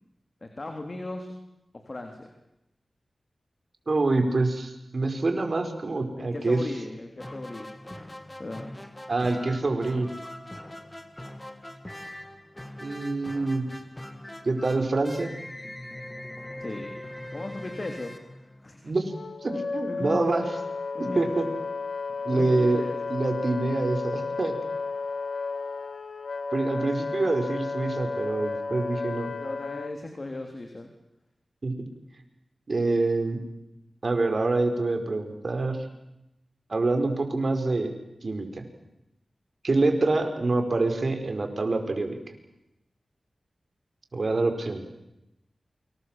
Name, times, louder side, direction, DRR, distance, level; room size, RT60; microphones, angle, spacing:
voice 1, 0.4-1.3 1.7-2.3 6.2-7.7 8.4-8.7 16.6-16.9 17.3-19.0 19.9-20.3 20.9-21.3 22.3-23.0 26.6-26.9 29.4-30.9, left 2 dB, 45° left, 4 dB, 3.6 m, -37 dB
voice 2, 3.9-6.6 9.1-10.1 12.8-13.7 14.5-15.3 18.8-19.1 19.4-20.5 21.2-21.5 22.2-22.8 23.1-24.6 26.5-29.3 31.6-31.8 32.7-33.4 34.0-35.9 36.7-37.9 38.2-38.6 39.6-42.2 44.1-44.9, right 3 dB, 55° right, 5 dB, 5.1 m, -26 dB
sound 1, 7.2-19.0, left 1 dB, 20° left, 2.7 m, -42 dB
Wind instrument woodwind instrument, 19.1-29.9, left 4 dB, 70° left, 1.6 m, -33 dB
29.0 x 25.5 x 7.7 m, 0.88 s
cardioid pair, 55°, 0 cm